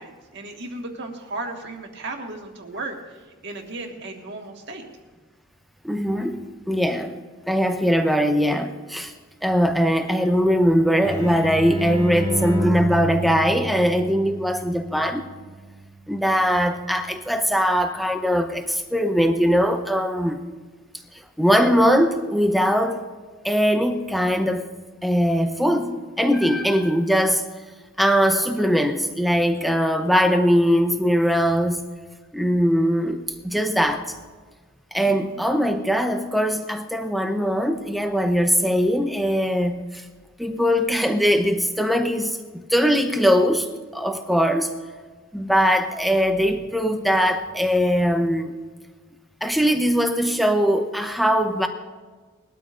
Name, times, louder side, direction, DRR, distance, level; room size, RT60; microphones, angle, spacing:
voice 1, 0.0-3.0 3.4-4.9 35.0-35.4, right 2 dB, 55° right, 2 dB, 1.7 m, -35 dB
voice 2, 5.8-7.1 7.5-9.1 9.4-15.2 16.1-20.4 21.4-23.0 23.4-24.6 25.0-27.5 28.0-31.9 32.3-34.1 34.9-40.0 40.4-43.7 43.9-44.7 45.3-48.5 49.4-51.7, equal, ahead, 6 dB, 0.7 m, -21 dB
sound 1, 11.0-16.5, right 1 dB, 15° left, 1.8 m, -30 dB
21.0 x 12.5 x 2.6 m, 1.4 s
head